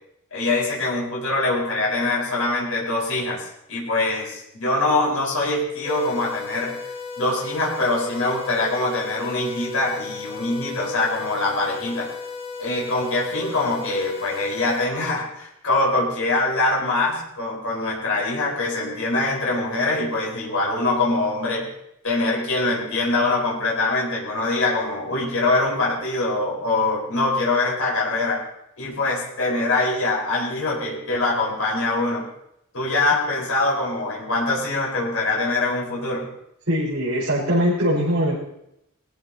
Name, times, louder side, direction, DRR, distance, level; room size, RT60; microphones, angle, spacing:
voice 1, 0.3-6.8 7.2-12.1 12.6-21.7 22.0-28.4 28.8-32.3 32.7-36.3, left 2 dB, 70° left, -4 dB, 4.9 m, -23 dB
sound 1, 5.8-14.8, left 4 dB, 25° left, 1.8 m, -35 dB
voice 2, 36.7-38.4, equal, 55° right, -10 dB, 5.3 m, -21 dB
21.0 x 15.0 x 2.9 m, 0.81 s
head